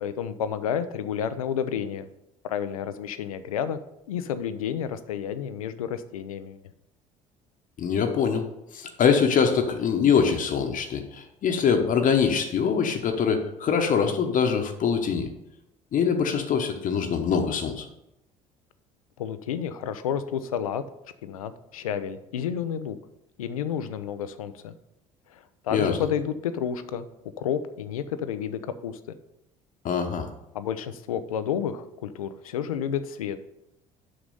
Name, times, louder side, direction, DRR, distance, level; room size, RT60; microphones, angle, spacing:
voice 1, 0.0-2.1 2.4-3.8 4.1-6.6 19.2-20.8 21.2-23.0 23.4-24.7 25.3-27.1 27.4-29.0 30.5-33.4, left 8 dB, 85° left, 12 dB, 0.5 m, -30 dB
voice 2, 7.8-8.4 8.7-15.3 15.9-17.9 25.7-26.0 29.8-30.3, left 6 dB, 50° left, 5 dB, 1.0 m, -23 dB
6.4 x 6.0 x 5.4 m, 0.87 s
hypercardioid pair, 60°, 18 cm